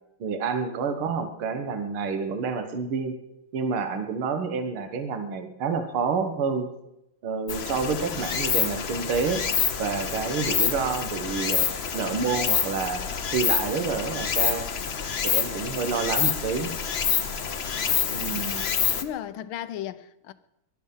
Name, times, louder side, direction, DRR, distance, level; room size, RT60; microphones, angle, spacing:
voice 1, 0.2-3.1 3.5-6.7 7.2-9.4 9.8-11.7 11.9-13.0 13.3-14.7 15.2-16.7 18.1-18.7, right 5 dB, 75° right, 2.2 m, -28 dB
Stream, 7.5-19.0, left 7 dB, 55° left, 0.7 m, -27 dB
voice 2, 18.1-20.3, left 11 dB, 75° left, 1.5 m, -37 dB
18.5 x 12.0 x 5.5 m
omnidirectional pair, 2.4 m